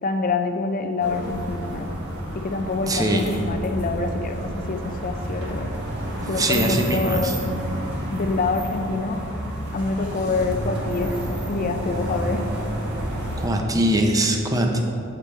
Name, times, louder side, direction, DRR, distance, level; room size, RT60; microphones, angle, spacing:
voice 1, 0.0-1.9 2.3-5.7 6.3-7.5 8.1-9.2 9.7-12.4, left 3 dB, 40° left, 6 dB, 0.5 m, -26 dB
sound 1, 1.0-13.5, right 1 dB, 55° right, 1.4 m, -30 dB
voice 2, 2.9-3.2 6.4-7.2 13.4-14.8, right 1 dB, 15° right, 2 dB, 0.7 m, -21 dB
7.7 x 5.2 x 4.3 m, 2.7 s
head